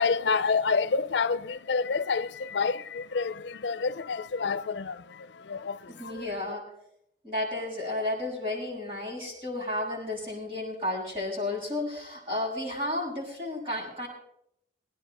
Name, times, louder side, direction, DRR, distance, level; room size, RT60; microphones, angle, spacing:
voice 1, 0.0-6.2, left 5 dB, 90° left, 0.6 m, -28 dB
voice 2, 5.9-6.7 7.2-14.1, left 1 dB, 30° right, 7.0 m, -32 dB
22.5 x 10.0 x 4.2 m
head